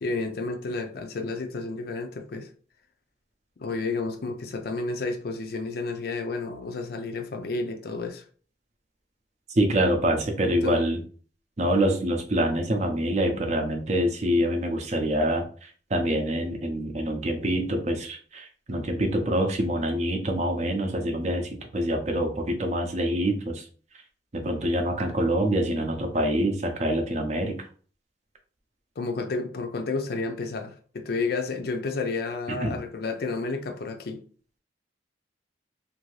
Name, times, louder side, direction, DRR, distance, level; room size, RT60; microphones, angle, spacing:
voice 1, 0.0-2.5 3.6-8.2 10.6-10.8 29.0-34.2, left 3 dB, 55° left, 0.4 m, -31 dB
voice 2, 9.5-11.0 11.6-23.7 24.3-27.6 32.5-32.7, right 1 dB, 40° right, 0.6 m, -26 dB
2.6 x 2.6 x 3.2 m
head